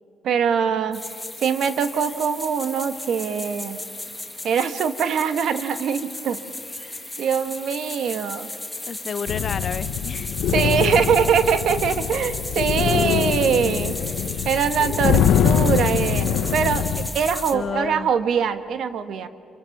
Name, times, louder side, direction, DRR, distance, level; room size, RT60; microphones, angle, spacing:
voice 1, 0.2-1.0 1.4-3.8 4.4-6.4 7.2-8.5 10.5-13.9 14.4-19.3, right 7 dB, 70° right, 11 dB, 1.2 m, -23 dB
sound 1, 0.9-17.5, left 2 dB, 10° left, 1.8 m, -34 dB
voice 2, 8.9-10.3 17.5-18.1, left 6 dB, 50° left, 13 dB, 0.9 m, -30 dB
sound 2, 9.3-17.1, left 9 dB, 80° left, 0.9 m, -23 dB
27.0 x 23.5 x 5.9 m, 2.6 s
cardioid pair, 90°, 0 cm